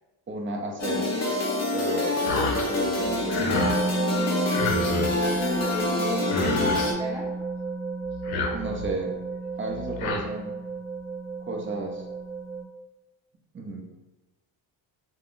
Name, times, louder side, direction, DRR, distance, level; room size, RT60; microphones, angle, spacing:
voice 1, 0.3-1.1 1.7-3.8 8.5-9.2 9.6-10.6 11.4-12.0 13.5-13.8, right 2 dB, 25° right, 1 dB, 0.5 m, -33 dB
sound 1, 0.8-6.9, left 2 dB, 30° left, 0.8 m, -27 dB
sound 2, 2.3-2.7 3.0-3.8 4.5-5.2 6.0-6.1 6.2-7.0 8.1-9.0 9.7-10.2, left 3 dB, 90° left, 0.6 m, -29 dB
sound 3, 3.5-12.6, right 3 dB, 90° right, 0.7 m, -31 dB
voice 2, 5.1-7.3, left 1 dB, 5° right, -8 dB, 1.4 m, -35 dB
3.5 x 2.1 x 2.4 m, 1.0 s
cardioid pair, 85°, 50 cm